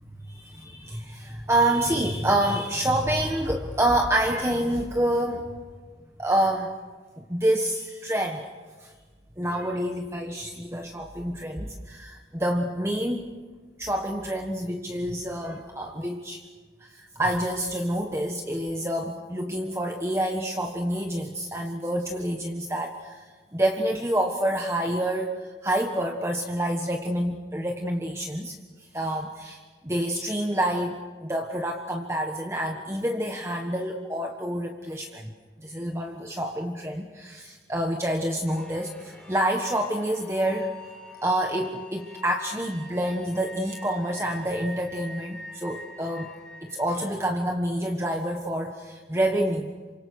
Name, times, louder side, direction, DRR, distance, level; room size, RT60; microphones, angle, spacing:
voice 1, 0.2-5.6 6.2-6.8 7.2-8.5 8.8-8.9 9.4-13.3 13.8-16.4 16.8-23.2 23.5-28.6 28.9-35.3 35.6-40.7 41.2-46.3 46.6-49.7, right 1 dB, 15° right, 2 dB, 1.3 m, -27 dB
sound 1, 38.5-46.8, left 2 dB, 5° left, 3.5 m, -44 dB
28.5 x 25.0 x 6.4 m, 1.4 s
head